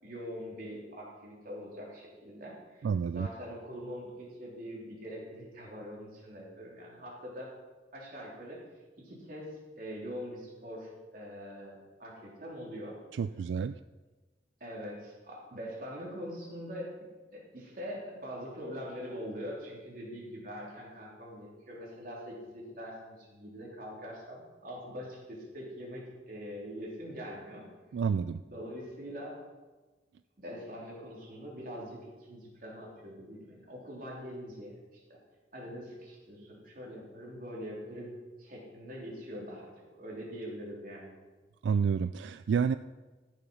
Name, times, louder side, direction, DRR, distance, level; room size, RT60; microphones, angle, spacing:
voice 1, 0.0-7.5 7.9-8.6 9.0-9.5 9.8-13.0 14.6-16.9 17.3-27.7 28.5-29.4 30.4-35.2 35.5-41.1, equal, 50° right, -3 dB, 3.5 m, -43 dB
voice 2, 2.8-3.3 13.1-13.8 27.9-28.4 41.6-42.8, right 6 dB, 85° right, 12 dB, 0.3 m, -29 dB
14.5 x 7.0 x 5.7 m, 1.3 s
head